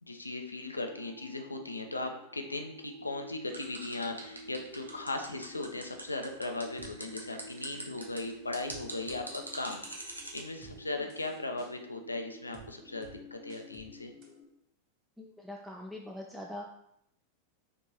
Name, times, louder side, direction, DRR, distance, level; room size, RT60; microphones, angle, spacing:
voice 1, 0.0-14.1, left 2 dB, 80° left, 4 dB, 0.3 m, -38 dB
sound 1, 0.8-14.4, equal, 25° right, 1.1 m, -52 dB
sound 2, 3.5-10.4, right 2 dB, 80° right, 0.5 m, -43 dB
sound 3, 6.8-6.9 7.5-7.9 8.7-9.2 9.7-9.8 10.4-10.8 11.1-11.7 12.5-12.7 13.0-13.2 13.5-13.9 14.2-14.3, right 6 dB, 40° right, 0.6 m, -53 dB
voice 2, 15.2-16.6, left 1 dB, 5° right, -1 dB, 0.3 m, -43 dB
3.2 x 2.5 x 2.8 m, 0.75 s
figure-of-eight pair, 90°, 0 cm